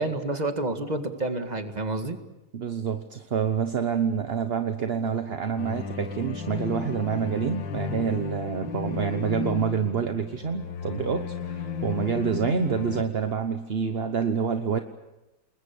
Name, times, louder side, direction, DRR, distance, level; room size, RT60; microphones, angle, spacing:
voice 1, 0.0-2.2, right 2 dB, 25° right, 6 dB, 1.9 m, -29 dB
voice 2, 2.5-14.8, right 6 dB, 40° right, 7 dB, 0.9 m, -27 dB
sound 1, 5.6-13.0, left 6 dB, 80° left, 2.0 m, -34 dB
29.0 x 21.0 x 7.0 m, 0.99 s
omnidirectional pair, 2.0 m